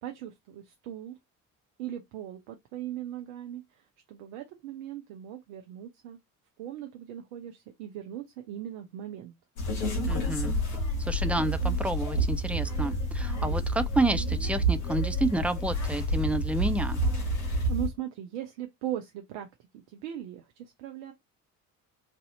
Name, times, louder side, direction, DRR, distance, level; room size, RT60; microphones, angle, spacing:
voice 1, 0.0-1.2 1.8-6.2 6.6-9.3 17.7-19.5 19.7-21.1, right 11 dB, 65° right, 0.7 m, -39 dB
sound 1, 9.6-17.9, right 1 dB, 65° left, 1.7 m, -29 dB
voice 2, 10.1-10.5 11.0-17.0, right 2 dB, 5° right, 0.5 m, -30 dB
3.4 x 2.7 x 4.0 m
figure-of-eight pair, 45°, 45 cm